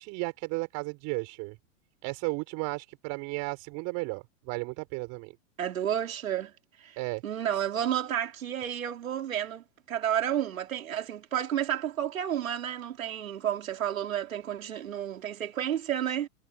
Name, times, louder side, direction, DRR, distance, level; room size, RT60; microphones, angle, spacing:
voice 1, 0.0-1.6 2.0-5.3 7.0-7.2, right 28 dB, 45° right, 5.0 m, -34 dB
voice 2, 5.6-6.5 6.8-7.0 7.2-16.3, right 10 dB, 85° right, 3.6 m, -31 dB
hypercardioid pair, 115°, 40 cm